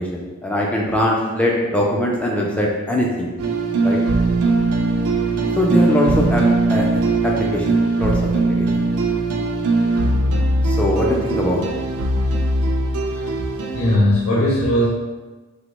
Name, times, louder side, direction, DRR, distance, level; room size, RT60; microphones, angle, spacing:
voice 1, 0.0-3.3 3.8-4.0 5.6-6.9 7.2-8.2 8.5-8.7 10.6-11.6, left 1 dB, 5° left, -3 dB, 0.4 m, -21 dB
sound 1, 3.4-14.0, right 2 dB, 80° right, 0.4 m, -20 dB
voice 2, 13.7-14.9, left 1 dB, 90° left, -6 dB, 0.6 m, -18 dB
3.4 x 2.0 x 3.1 m, 1.3 s
head